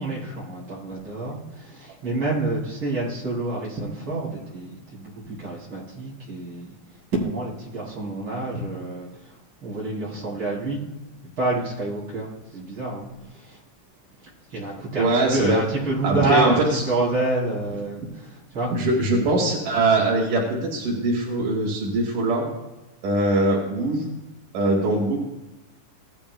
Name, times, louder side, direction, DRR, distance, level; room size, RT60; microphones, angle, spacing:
voice 1, 0.0-6.7 7.2-9.4 9.6-10.8 11.4-13.6 14.5-16.6 16.9-18.8 19.7-19.9, right 2 dB, 40° right, -6 dB, 4.6 m, -28 dB
voice 2, 15.0-15.6 16.0-16.8 18.8-22.5 23.0-24.1 24.5-25.2, right 2 dB, 85° right, -2 dB, 3.7 m, -22 dB
18.0 x 12.0 x 2.3 m, 1.0 s
omnidirectional pair, 3.6 m